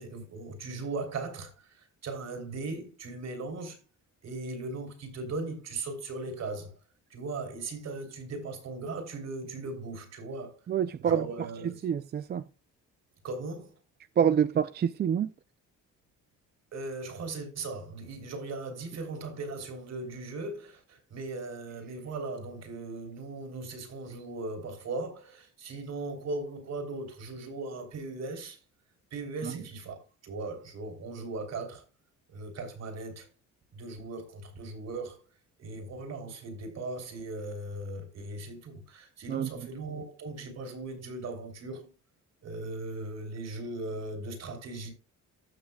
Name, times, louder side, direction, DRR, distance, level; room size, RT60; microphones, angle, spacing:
voice 1, 0.0-3.8 4.2-6.7 7.1-10.6 11.0-11.8 13.2-13.7 16.7-28.6 29.1-31.8 32.3-33.3 33.7-35.2 35.6-41.9 42.4-44.9, right 3 dB, 60° right, 3.4 m, -38 dB
voice 2, 10.7-11.2 11.6-12.5 14.2-15.3 29.4-29.5 39.3-39.5, right 8 dB, 35° right, 0.4 m, -27 dB
15.0 x 6.4 x 2.3 m
cardioid pair, 130°, 30 cm